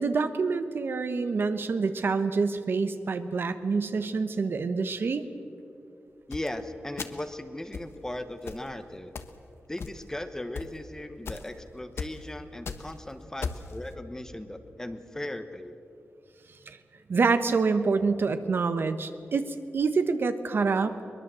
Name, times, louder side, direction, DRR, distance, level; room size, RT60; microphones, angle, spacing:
voice 1, 0.0-5.3 16.7-16.8 17.1-21.1, right 4 dB, 55° right, 10 dB, 1.1 m, -27 dB
sound 1, 6.3-6.5 7.0-7.3 7.7-7.9 8.5-8.7 9.2-9.4 9.8-10.2 10.5-10.7 11.3-11.5 12.0-12.2 12.5-12.9 13.4-13.7, left 5 dB, 70° left, 1.2 m, -36 dB
voice 2, 6.3-9.1 9.7-15.8, left 1 dB, 10° left, 9 dB, 1.1 m, -37 dB
22.5 x 21.5 x 7.6 m, 2.7 s
wide cardioid pair, 145°, 4 cm